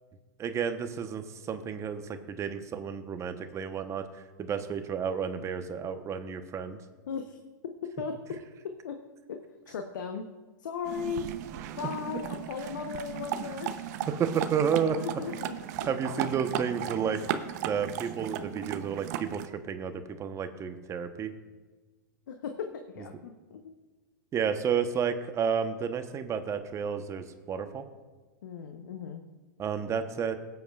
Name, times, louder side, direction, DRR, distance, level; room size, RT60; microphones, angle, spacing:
voice 1, 0.4-6.8 12.1-12.2 13.4-13.5 14.1-15.0 15.9-17.2 17.7-21.3 24.3-27.8 29.6-30.4, right 7 dB, 30° right, 8 dB, 1.0 m, -31 dB
voice 2, 7.1-7.4 8.0-8.1 8.8-9.0 9.3-9.4 9.7-10.3 10.6-11.3 11.8-13.7 14.0-14.1 15.0-15.5 15.8-16.3 22.3-23.6 28.4-29.2, left 6 dB, 75° left, 6 dB, 0.9 m, -37 dB
sound 1, 10.8-19.5, right 10 dB, 55° right, 0.7 m, -36 dB
22.0 x 8.0 x 2.4 m, 1.3 s
hypercardioid pair, 105°, 11 cm